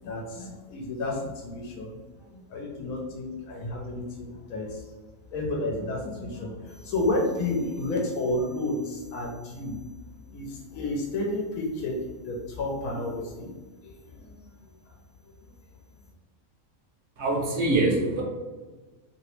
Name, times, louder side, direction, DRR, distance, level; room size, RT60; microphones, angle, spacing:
voice 1, 0.0-4.9 5.3-9.8 10.3-13.5 13.8-14.4 14.9-15.0, left 2 dB, 85° left, 0 dB, 1.1 m, -31 dB
voice 2, 17.2-18.2, right 2 dB, 60° right, -1 dB, 1.0 m, -24 dB
2.9 x 2.8 x 3.1 m, 1.2 s
omnidirectional pair, 1.5 m